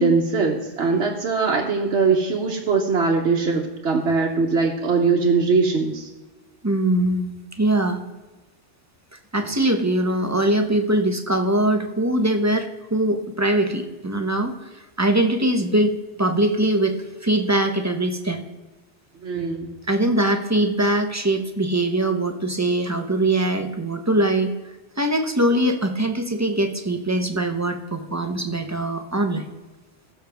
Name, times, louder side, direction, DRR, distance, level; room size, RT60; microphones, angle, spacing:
voice 1, 0.0-6.1 19.2-19.7, right 4 dB, 70° right, -1 dB, 1.3 m, -21 dB
voice 2, 6.6-7.3 7.6-8.0 9.3-14.6 15.0-17.0 17.2-18.4 19.9-24.5 25.0-29.4, right 1 dB, 15° right, 5 dB, 0.8 m, -22 dB
15.5 x 6.6 x 3.4 m, 1.2 s
omnidirectional pair, 1.2 m